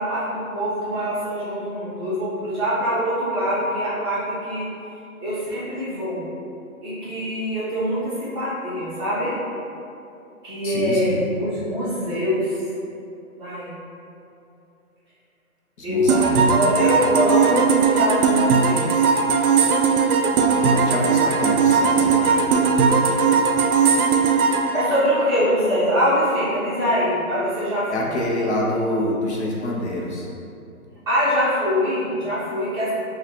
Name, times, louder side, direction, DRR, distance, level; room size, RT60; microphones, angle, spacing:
voice 1, 0.0-4.7 5.2-6.2 6.8-9.4 10.4-12.6 13.4-13.7 15.8-19.1 24.7-28.1 31.1-32.9, equal, 20° right, -12 dB, 0.9 m, -24 dB
voice 2, 10.6-11.2 15.8-16.7 20.3-22.8 27.9-30.3, left 1 dB, 50° left, -3 dB, 0.7 m, -27 dB
sound 1, 16.1-25.8, right 5 dB, 90° right, 0.6 m, -19 dB
5.6 x 2.4 x 2.9 m, 2.7 s
hypercardioid pair, 155°, 43 cm